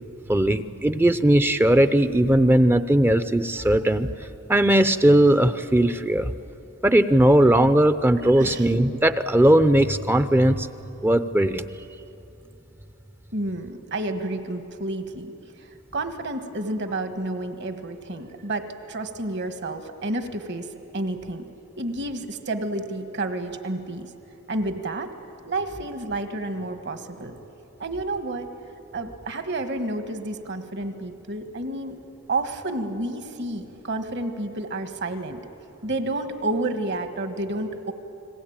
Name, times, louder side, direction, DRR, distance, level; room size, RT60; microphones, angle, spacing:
voice 1, 0.3-4.1 4.5-6.3 6.8-10.7 11.0-11.7, right 1 dB, 10° right, 12 dB, 0.6 m, -18 dB
voice 2, 8.2-8.7 13.3-21.5 21.8-24.1 24.5-25.1 25.5-27.4 27.8-28.5 28.9-32.0 32.3-35.4 35.8-37.9, right 2 dB, 55° right, 8 dB, 1.6 m, -30 dB
29.5 x 20.5 x 8.9 m, 2.9 s
head